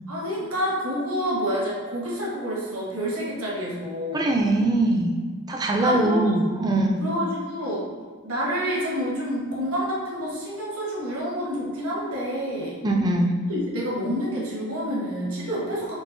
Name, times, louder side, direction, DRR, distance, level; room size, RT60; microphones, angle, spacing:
voice 1, 0.1-4.2 5.8-6.3 7.0-7.8 8.2-12.8 13.5-15.9, equal, 70° right, -5 dB, 1.1 m, -28 dB
voice 2, 4.1-5.2 5.5-7.0 12.8-13.3, right 2 dB, 20° right, 1 dB, 0.4 m, -22 dB
5.4 x 2.8 x 2.6 m, 1.5 s
head